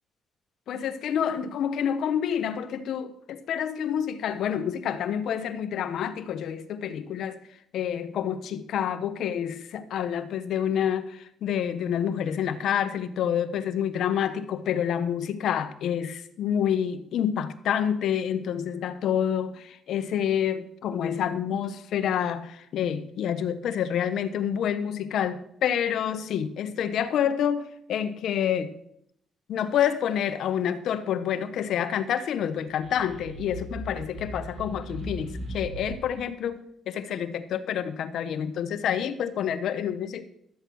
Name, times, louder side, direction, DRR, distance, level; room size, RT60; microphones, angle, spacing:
voice 1, 0.7-7.4 7.7-28.7 29.5-40.2, left 9 dB, 75° left, 1.1 m, -28 dB
sound 1, 32.6-36.2, right 1 dB, 60° right, 3.9 m, -38 dB
13.0 x 8.3 x 6.3 m
cardioid pair, 90°, 0 cm